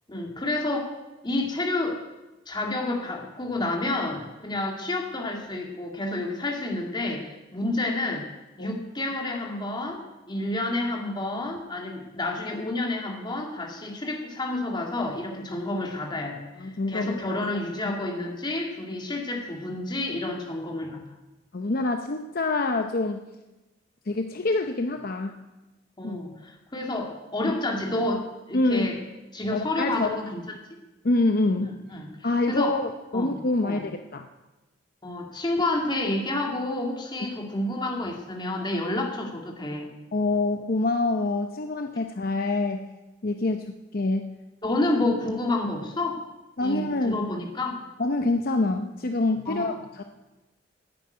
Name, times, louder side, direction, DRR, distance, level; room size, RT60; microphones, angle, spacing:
voice 1, 0.1-0.9 1.2-2.0 2.5-8.2 8.6-21.0 26.0-29.0 29.3-30.4 31.9-32.1 32.5-32.8 33.1-33.3 33.6-33.8 35.0-39.9 44.6-46.2 46.6-47.8 49.5-49.7, left 2 dB, 25° left, 1 dB, 2.3 m, -29 dB
voice 2, 16.6-17.4 21.5-23.3 24.1-25.4 26.0-26.2 28.5-29.0 29.5-30.2 31.0-31.8 32.2-34.3 40.1-42.8 43.2-44.3 46.6-47.2 48.0-50.0, left 2 dB, 50° left, 6 dB, 0.7 m, -26 dB
11.0 x 9.3 x 9.6 m, 1.1 s
head